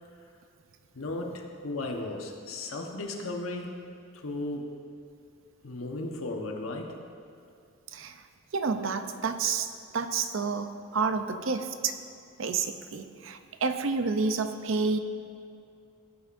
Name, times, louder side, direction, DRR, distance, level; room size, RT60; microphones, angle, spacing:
voice 1, 0.9-3.8 4.1-4.8 5.6-6.9, left 2 dB, 85° left, 2 dB, 1.2 m, -35 dB
voice 2, 8.5-11.9 12.4-15.0, right 4 dB, 70° right, 8 dB, 0.6 m, -29 dB
17.0 x 8.5 x 2.6 m, 2.5 s
head